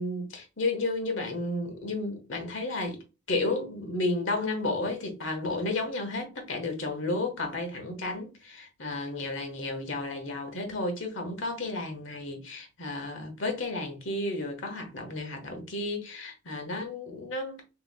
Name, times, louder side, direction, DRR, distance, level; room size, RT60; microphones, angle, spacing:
voice 1, 0.0-3.0 3.3-17.6, left 2 dB, 85° left, 1.3 m, -32 dB
6.7 x 3.0 x 2.2 m
head